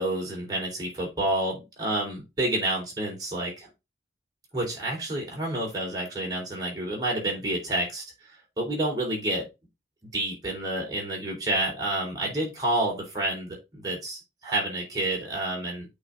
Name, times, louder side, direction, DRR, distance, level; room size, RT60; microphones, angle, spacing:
voice 1, 0.0-3.7 4.5-8.0 8.6-9.5 10.1-15.9, right 1 dB, 20° right, -3 dB, 3.8 m, -29 dB
8.6 x 4.2 x 3.6 m, 0.23 s
head